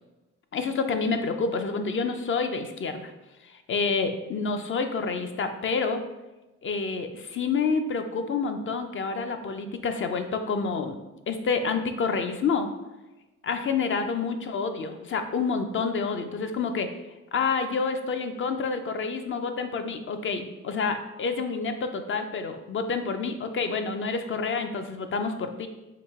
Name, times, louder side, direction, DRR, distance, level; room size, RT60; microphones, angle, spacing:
voice 1, 0.5-3.1 3.4-6.0 6.6-11.0 11.3-12.7 13.4-16.9 17.3-25.7, left 4 dB, 40° left, 7 dB, 0.5 m, -28 dB
4.8 x 2.7 x 3.6 m, 1.0 s
cardioid pair, 90°, 30 cm